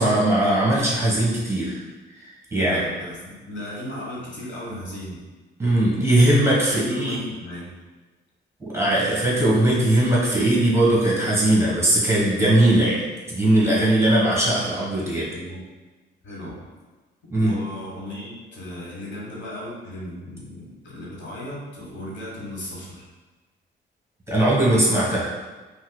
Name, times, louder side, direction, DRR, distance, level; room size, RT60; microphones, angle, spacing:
voice 1, 0.0-1.8 2.2-2.8 5.6-7.2 8.6-13.0 13.3-15.3 17.3-17.6 24.3-25.3, right 1 dB, 15° right, -6 dB, 1.2 m, -20 dB
voice 2, 2.5-5.2 6.7-7.7 15.3-15.6 16.2-16.6 17.3-23.1, left 1 dB, 65° left, -4 dB, 1.2 m, -36 dB
5.3 x 2.2 x 2.2 m, 1.2 s
cardioid pair, 90°, 20 cm